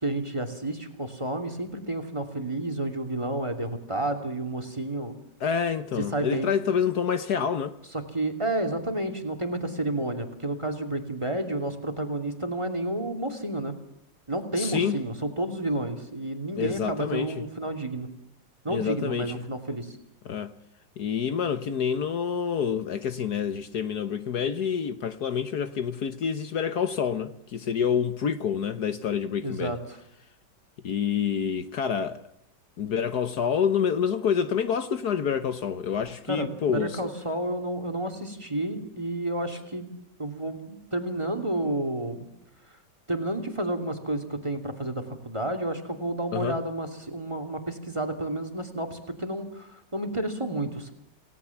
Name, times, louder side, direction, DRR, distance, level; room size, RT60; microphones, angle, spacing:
voice 1, 0.0-5.1 6.1-6.5 7.9-13.7 14.3-18.1 18.6-20.0 29.4-30.0 36.3-39.9 40.2-42.3 43.1-50.9, right 1 dB, 15° right, 2.8 m, -30 dB
voice 2, 5.4-7.7 14.6-15.0 16.6-17.4 18.7-19.4 20.2-20.5 21.0-29.7 30.8-32.2 32.8-37.1 46.3-46.6, left 7 dB, 65° left, 1.5 m, -27 dB
28.5 x 18.5 x 7.2 m
omnidirectional pair, 1.9 m